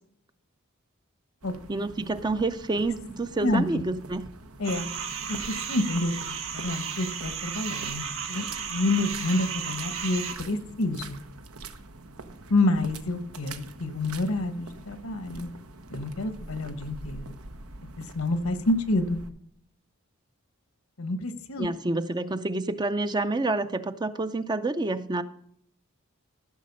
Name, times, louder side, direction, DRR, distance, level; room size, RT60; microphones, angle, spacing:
sound 1, 1.4-19.3, right 3 dB, 90° right, 1.1 m, -45 dB
voice 1, 1.7-4.2 21.6-25.2, right 2 dB, 20° right, 10 dB, 0.5 m, -28 dB
sound 2, 4.6-10.3, right 7 dB, 65° right, 2.1 m, -34 dB
voice 2, 5.3-11.2 12.5-15.5 15.9-17.3 18.0-19.2 21.0-21.7, left 2 dB, 75° left, 10 dB, 1.2 m, -28 dB
14.0 x 6.3 x 5.4 m, 0.68 s
head